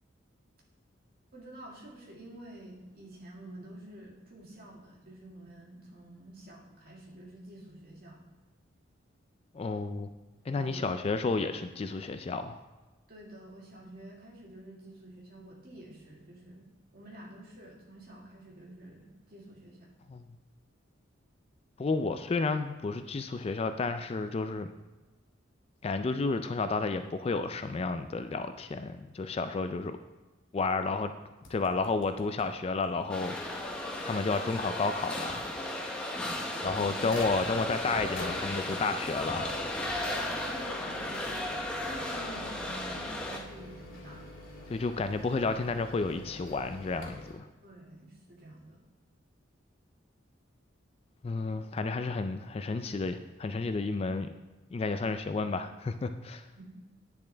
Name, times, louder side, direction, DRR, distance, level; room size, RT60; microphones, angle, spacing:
voice 1, 1.3-8.2 10.5-10.8 13.1-16.7 16.9-19.9 36.7-37.0 40.4-41.3 41.8-44.2 47.6-48.8 56.6-56.7, right 1 dB, 50° right, -3 dB, 2.1 m, -49 dB
voice 2, 9.5-10.1 10.5-12.6 20.1-20.3 21.8-24.7 25.8-30.0 30.5-31.1 31.5-33.6 34.0-35.5 36.6-39.6 44.7-47.5 51.2-54.3 54.7-56.4, left 3 dB, 30° left, 9 dB, 0.3 m, -31 dB
sound 1, 31.4-32.5 32.8-32.9 33.2-33.3 33.9-34.0 36.1-47.3, left 1 dB, 80° left, 2.1 m, -46 dB
sound 2, 33.1-43.4, left 1 dB, 5° left, 0.9 m, -35 dB
9.6 x 7.2 x 3.3 m, 1.2 s
head